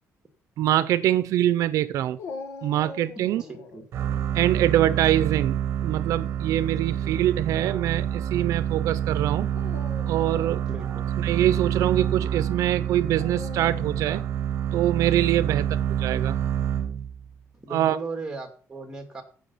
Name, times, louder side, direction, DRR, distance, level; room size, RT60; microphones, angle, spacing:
voice 1, 0.6-2.2 2.6-3.4 4.3-9.5 10.1-10.6 11.2-14.2 14.7-15.6 16.0-16.4 17.7-18.0, right 12 dB, 80° right, 0.6 m, -24 dB
Dog, 2.2-3.8 5.9-6.4 7.2-7.3 9.4-10.7 13.1-14.1, left 4 dB, 75° left, 1.7 m, -41 dB
voice 2, 3.2-3.9 6.9-7.1 10.7-11.1 15.5-15.8 17.5-19.2, right 3 dB, 10° right, 2.5 m, -38 dB
sound 1, 3.9-17.3, right 9 dB, 50° right, 1.1 m, -27 dB
15.5 x 5.9 x 5.7 m
cardioid pair, 170°, 6 cm